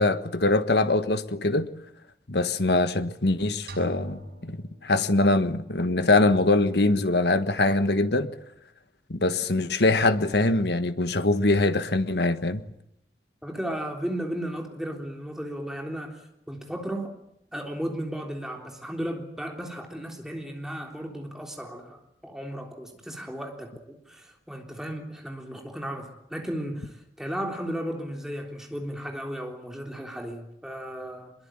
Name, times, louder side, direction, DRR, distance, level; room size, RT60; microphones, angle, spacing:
voice 1, 0.0-1.7 2.3-8.3 9.1-12.6, left 2 dB, 75° left, 1.5 m, -23 dB
sound 1, 3.7-5.6, right 1 dB, 70° right, 6.3 m, -41 dB
voice 2, 13.4-16.2 16.5-17.2 17.5-22.0 22.2-31.3, equal, 5° right, 3.6 m, -35 dB
24.0 x 22.0 x 8.9 m
head